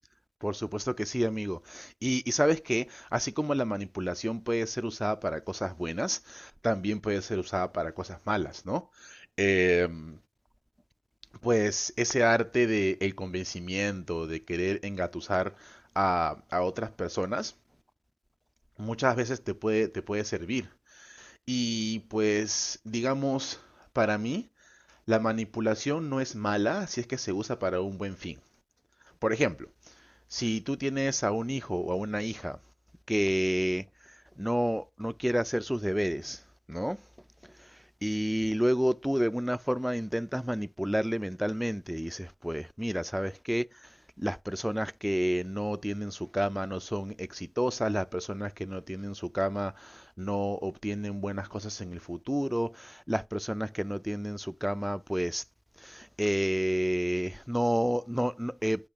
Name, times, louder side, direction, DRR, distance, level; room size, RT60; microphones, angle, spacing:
voice 1, 0.4-10.2 11.4-17.5 18.8-23.7 24.0-24.5 25.1-28.4 29.2-29.7 30.3-32.6 33.1-36.4 36.7-37.0 37.6-43.9 44.2-55.4 55.8-58.9, equal, 5° right, 0.4 m, -30 dB
10.5 x 5.1 x 3.6 m
cardioid pair, 40°, 0 cm